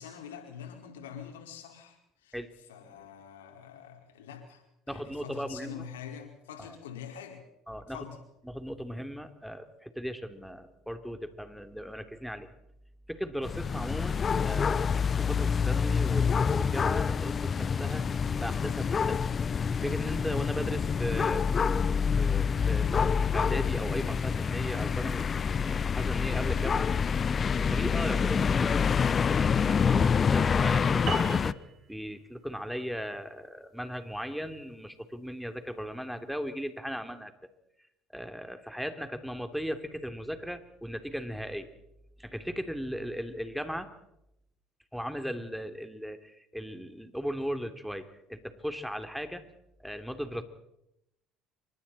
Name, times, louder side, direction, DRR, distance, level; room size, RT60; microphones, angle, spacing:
voice 1, 0.0-2.4 2.7-7.4 7.9-8.2, left 8 dB, 80° left, 3 dB, 5.0 m, -45 dB
voice 2, 4.9-5.8 6.7-6.8 7.7-8.0 8.4-12.5 13.1-18.1 18.4-19.2 19.8-25.3 25.6-26.9 27.7-28.7 29.3-31.5 31.9-37.3 38.1-41.7 42.2-43.9 44.9-49.4 49.8-50.4, equal, ahead, 7 dB, 3.3 m, -37 dB
sound 1, 13.4-31.5, left 6 dB, 35° left, 0.8 m, -27 dB
sound 2, 31.1-35.8, right 7 dB, 45° right, 4.7 m, -42 dB
28.5 x 25.5 x 4.4 m, 0.82 s
hypercardioid pair, 60°, 0 cm